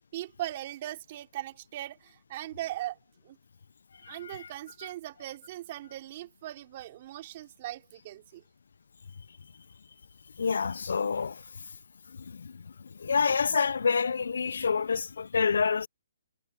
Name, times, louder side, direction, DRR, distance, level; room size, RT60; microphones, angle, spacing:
voice 1, 0.1-3.0 3.2-3.4 4.1-8.4, right 14 dB, 35° right, 3.2 m, -39 dB
voice 2, 4.0-4.5 10.4-11.4 12.3-12.6 13.0-15.9, left 5 dB, 75° left, 0.4 m, -28 dB
hypercardioid pair, 165°, 0 cm